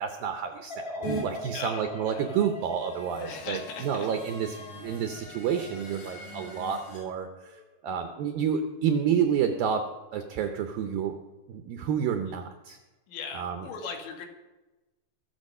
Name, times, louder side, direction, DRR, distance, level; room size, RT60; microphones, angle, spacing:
voice 1, 0.0-9.8 10.1-11.1 11.5-12.8 13.3-13.7, right 7 dB, 75° right, 6 dB, 2.2 m, -29 dB
sound 1, 0.7-7.6 8.0-8.5, left 1 dB, 25° left, 1.3 m, -43 dB
sound 2, 1.0-1.2 2.6-7.0, right 1 dB, 70° left, 6.7 m, -41 dB
voice 2, 1.5-2.5 3.2-4.1 13.1-14.3, left 5 dB, 85° left, 3 dB, 4.1 m, -39 dB
22.0 x 7.4 x 5.4 m, 1.1 s
omnidirectional pair, 5.0 m